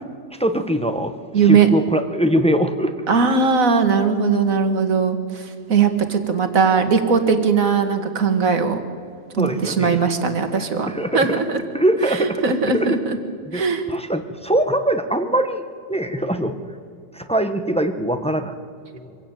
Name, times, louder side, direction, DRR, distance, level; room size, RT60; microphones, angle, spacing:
voice 1, 0.4-1.1 1.4-2.9 9.4-10.0 10.8-11.4 11.7-13.0 13.5-13.6 13.9-15.6 15.9-16.6 17.1-18.5 18.9-19.1, right 1 dB, 5° left, 7 dB, 1.1 m, -22 dB
voice 2, 1.3-1.7 3.1-8.8 9.3-10.9 11.1-11.6 12.1-13.2 13.5-13.8, right 5 dB, 60° right, 7 dB, 2.2 m, -19 dB
25.0 x 16.5 x 9.1 m, 2.3 s
omnidirectional pair, 1.7 m